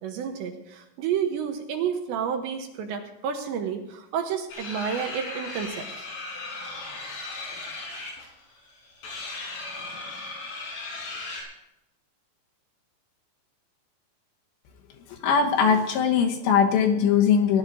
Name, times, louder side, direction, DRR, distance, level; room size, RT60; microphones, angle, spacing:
voice 1, 0.0-6.1, right 7 dB, 75° right, 4 dB, 3.1 m, -30 dB
sound 1, 4.5-11.4, left 3 dB, 85° left, 7.0 m, -37 dB
voice 2, 15.1-17.6, left 6 dB, 70° left, 2 dB, 3.1 m, -21 dB
19.0 x 11.5 x 4.0 m, 0.86 s
omnidirectional pair, 5.7 m